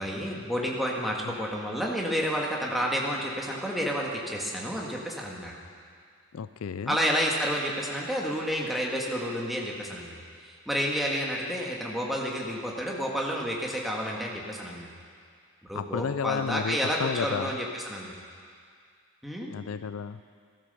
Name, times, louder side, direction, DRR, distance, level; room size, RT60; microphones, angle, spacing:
voice 1, 0.0-5.6 6.9-14.9 15.6-18.1 19.2-19.5, equal, ahead, -3 dB, 1.8 m, -30 dB
voice 2, 6.3-7.0 15.7-17.5 19.5-20.2, left 6 dB, 80° left, 13 dB, 0.4 m, -32 dB
14.5 x 13.5 x 6.8 m, 2.1 s
head